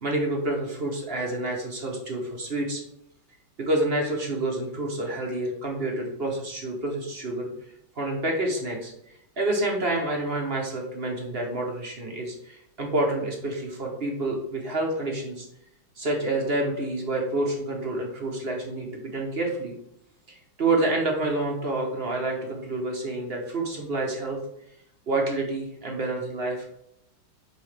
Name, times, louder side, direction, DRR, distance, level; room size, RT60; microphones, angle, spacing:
voice 1, 0.0-2.8 3.6-7.5 8.0-15.5 16.0-19.7 20.3-24.4 25.1-26.8, right 2 dB, 45° right, 0 dB, 0.8 m, -28 dB
6.7 x 4.9 x 3.3 m, 0.81 s
omnidirectional pair, 2.1 m